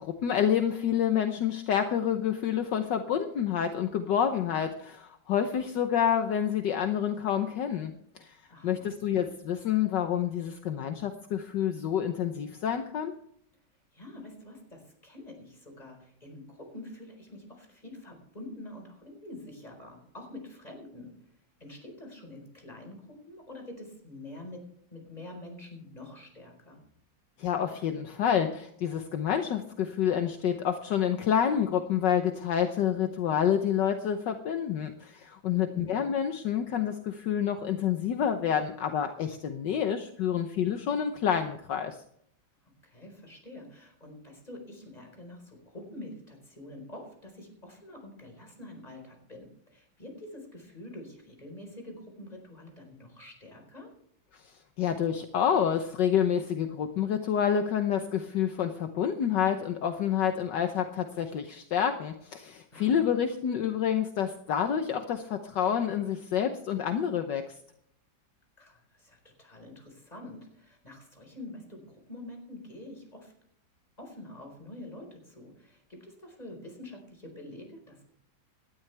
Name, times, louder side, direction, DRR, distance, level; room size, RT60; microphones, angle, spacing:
voice 1, 0.0-8.4 8.6-13.1 27.4-42.0 54.3-67.6, left 8 dB, 70° left, 7 dB, 1.6 m, -28 dB
voice 2, 8.5-8.9 13.9-21.1 21.6-24.6 24.9-26.8 35.5-35.9 42.8-53.9 62.7-63.1 68.6-73.3 74.0-78.1, left 1 dB, 20° left, 2 dB, 4.6 m, -46 dB
18.0 x 13.0 x 3.4 m, 0.70 s
omnidirectional pair, 2.1 m